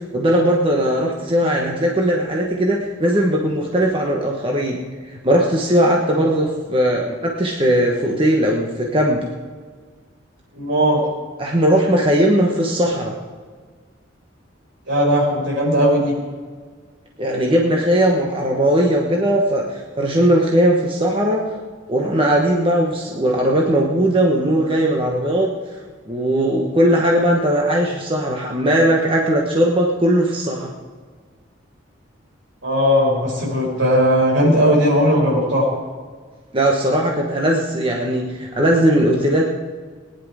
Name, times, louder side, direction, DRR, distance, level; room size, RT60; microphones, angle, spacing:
voice 1, 0.1-4.8 5.1-9.3 11.4-13.1 17.2-21.4 21.9-25.5 26.1-30.7 36.5-39.4, right 1 dB, 25° right, -1 dB, 1.2 m, -18 dB
voice 2, 10.5-11.0 14.9-16.1 32.6-35.7, equal, 70° right, -3 dB, 5.4 m, -17 dB
18.5 x 10.5 x 5.0 m, 1.5 s
head